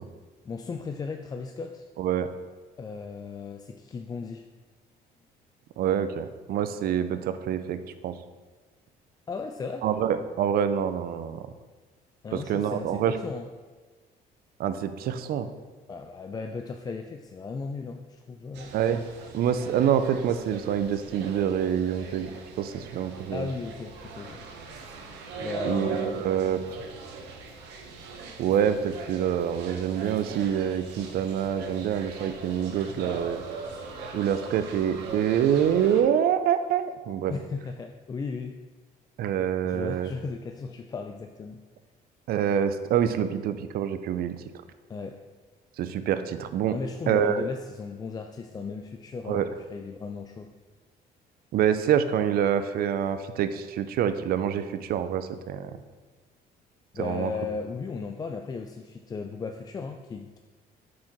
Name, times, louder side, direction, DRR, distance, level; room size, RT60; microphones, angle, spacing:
voice 1, 0.5-1.9 2.8-4.5 9.3-9.9 12.2-13.5 15.9-18.7 23.3-24.4 25.4-26.3 37.3-38.6 39.6-41.6 44.9-45.2 46.7-50.5 56.9-60.4, left 4 dB, 25° left, 5 dB, 0.3 m, -36 dB
voice 2, 2.0-2.3 5.8-8.1 9.8-11.5 12.3-13.2 14.6-15.5 18.7-19.0 19.3-22.3 22.6-23.5 25.6-26.6 28.4-33.4 34.1-37.3 39.2-40.1 42.3-44.4 45.8-46.8 47.1-47.5 49.3-49.5 51.5-55.7 57.0-57.3, right 9 dB, 65° right, 11 dB, 0.5 m, -26 dB
sound 1, 18.5-36.0, right 4 dB, 85° right, 0.9 m, -40 dB
6.2 x 4.4 x 4.4 m, 1.3 s
cardioid pair, 110°, 17 cm